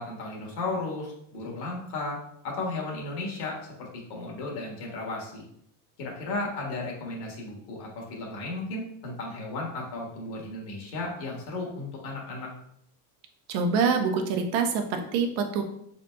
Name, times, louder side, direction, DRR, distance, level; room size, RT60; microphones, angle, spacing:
voice 1, 0.0-2.2 2.4-5.4 6.0-12.5, left 2 dB, 60° left, -1 dB, 1.6 m, -34 dB
voice 2, 13.5-15.6, right 5 dB, 80° right, 5 dB, 0.9 m, -25 dB
5.2 x 4.0 x 2.2 m, 0.71 s
cardioid pair, 150°, 44 cm